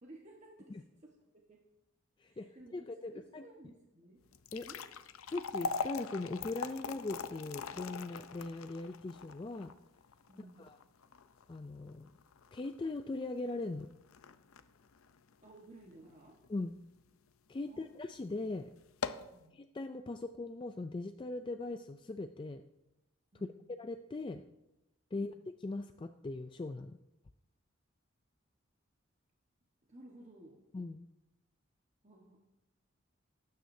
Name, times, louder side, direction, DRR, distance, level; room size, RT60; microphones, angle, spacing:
voice 1, 0.0-1.2 1.5-1.6 2.2-4.2 4.7-4.8 10.3-10.7 15.4-16.4 17.7-18.1 19.3-19.6 23.3-23.7 25.1-25.4 29.9-30.6 32.0-32.4, right 1 dB, 35° right, -1 dB, 1.2 m, -56 dB
voice 2, 2.2-3.4 4.5-4.7 5.3-9.7 10.6-10.8 11.5-12.1 12.5-13.9 16.5-16.7 17.5-18.7 19.5-22.6 23.7-24.4 25.1-25.3 25.6-27.0 30.7-31.1, left 2 dB, 25° left, 8 dB, 0.3 m, -40 dB
sound 1, 4.2-16.5 17.0-17.1 17.8-18.0 18.3-18.4 18.8-19.4, left 5 dB, 85° left, 0.6 m, -42 dB
19.0 x 9.3 x 2.7 m, 0.92 s
head